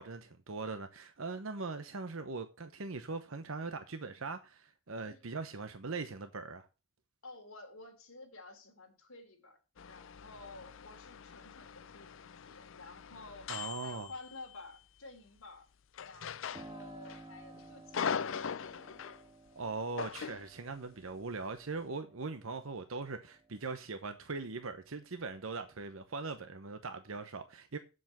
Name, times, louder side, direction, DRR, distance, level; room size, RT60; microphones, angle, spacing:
voice 1, 0.0-6.7 13.5-14.1 19.6-27.8, right 3 dB, 75° right, 1.0 m, -41 dB
voice 2, 7.2-9.6 9.9-15.7 16.0-18.9, left 3 dB, 75° left, 3.6 m, -52 dB
sound 1, 9.8-14.8 15.9-17.2 17.5-19.2 20.0-20.5, left 6 dB, 60° left, 0.5 m, -41 dB
Piano, 16.5-25.0 25.4-26.4, right 2 dB, 20° right, 1.4 m, -56 dB
8.2 x 7.6 x 5.8 m
head